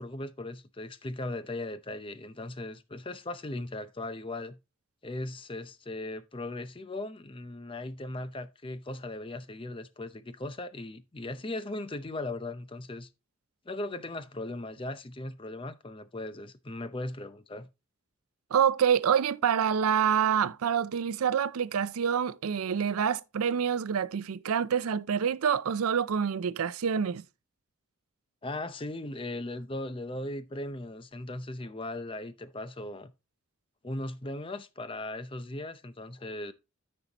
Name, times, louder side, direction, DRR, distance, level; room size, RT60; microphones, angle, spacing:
voice 1, 0.0-4.6 5.0-13.1 13.7-17.7 28.4-33.1 33.8-36.5, left 2 dB, 25° left, 0.6 m, -38 dB
voice 2, 18.5-27.2, right 7 dB, 90° right, 0.5 m, -27 dB
13.5 x 5.5 x 2.9 m
head